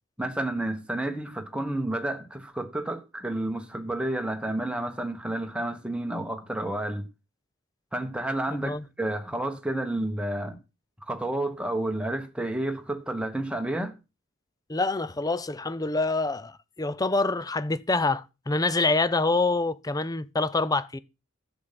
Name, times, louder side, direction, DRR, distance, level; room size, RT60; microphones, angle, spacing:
voice 1, 0.2-7.1 7.9-10.6 11.0-13.9, right 1 dB, 5° right, 1.4 m, -30 dB
voice 2, 14.7-21.0, left 3 dB, 15° left, 0.5 m, -26 dB
11.5 x 7.9 x 5.8 m
head